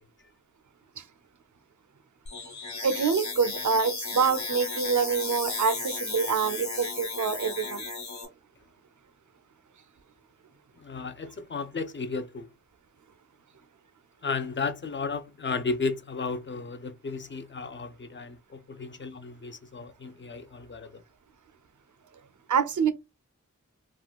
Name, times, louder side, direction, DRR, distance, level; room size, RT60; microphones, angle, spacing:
sound 1, 2.3-8.3, left 3 dB, 65° left, 1.0 m, -34 dB
voice 1, 2.8-7.8 22.5-22.9, right 6 dB, 70° right, 0.5 m, -26 dB
voice 2, 10.8-12.5 14.2-21.0, left 4 dB, 40° left, 0.4 m, -34 dB
3.6 x 2.2 x 2.3 m
wide cardioid pair, 55°, 31 cm